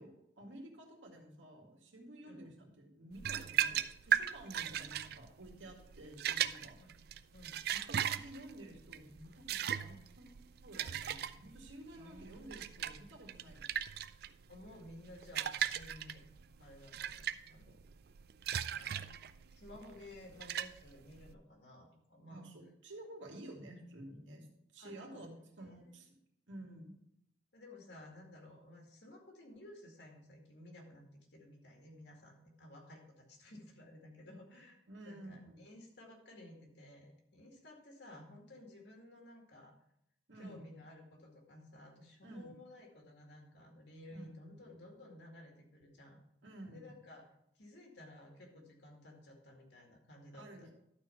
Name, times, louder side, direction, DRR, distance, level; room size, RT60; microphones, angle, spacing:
voice 1, 0.0-6.8 7.7-13.7 22.3-24.5 24.7-25.3 25.6-26.2 26.5-26.9 34.9-35.6 40.3-40.6 42.2-42.5 44.1-44.2 46.4-46.9 50.3-50.7, right 1 dB, 85° right, 1 dB, 2.0 m, -52 dB
sound 1, 3.2-21.3, right 9 dB, 55° right, 0.4 m, -38 dB
voice 2, 11.9-12.9 14.5-16.2 16.6-17.8 18.5-19.3 19.6-22.5 24.8-26.0 27.5-39.7 40.4-46.2 46.7-50.7, left 1 dB, 70° left, 1 dB, 2.2 m, -55 dB
12.0 x 4.4 x 5.6 m, 0.78 s
head